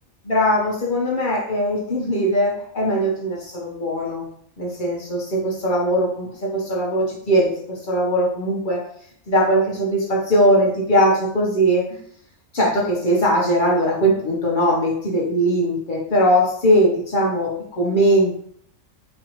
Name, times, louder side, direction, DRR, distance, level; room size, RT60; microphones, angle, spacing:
voice 1, 0.2-4.3 4.6-8.8 9.3-12.0 12.5-18.4, equal, 45° left, -2 dB, 0.8 m, -20 dB
4.1 x 2.7 x 2.9 m, 0.64 s
omnidirectional pair, 1.4 m